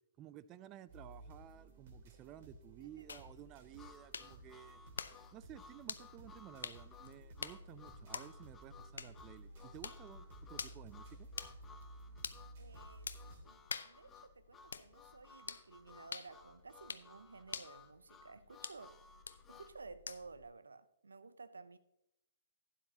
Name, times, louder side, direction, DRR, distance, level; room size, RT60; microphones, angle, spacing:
voice 1, 0.2-4.8 5.3-11.3, right 12 dB, 30° right, 0.4 m, -54 dB
sound 1, 0.9-13.4, right 1 dB, 55° right, 2.6 m, -56 dB
voice 2, 2.8-3.1 12.6-19.0 19.5-21.8, right 4 dB, 80° right, 0.5 m, -55 dB
sound 2, 3.1-20.5, left 5 dB, 70° left, 0.5 m, -49 dB
Harmonica, 3.8-19.8, left 5 dB, 15° left, 0.7 m, -60 dB
12.0 x 10.0 x 2.8 m
figure-of-eight pair, 120°, 0 cm